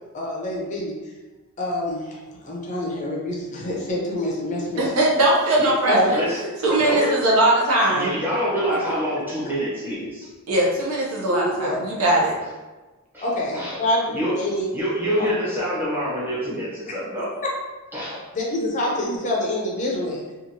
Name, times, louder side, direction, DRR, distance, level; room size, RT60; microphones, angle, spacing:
voice 1, 0.1-0.9 1.6-2.2 2.4-5.0 5.9-6.2 11.3-11.9 13.2-14.6 15.2-15.3 18.3-20.2, left 1 dB, 35° left, -3 dB, 0.5 m, -26 dB
voice 2, 4.8-6.2 6.6-8.2 10.5-12.4, right 1 dB, 70° right, -3 dB, 0.7 m, -20 dB
voice 3, 6.8-7.2 7.8-10.3 13.1-13.2 13.5-13.8 14.1-14.4 14.7-17.3 17.9-18.2, equal, 10° right, -8 dB, 0.9 m, -26 dB
2.9 x 2.4 x 2.7 m, 1.2 s
head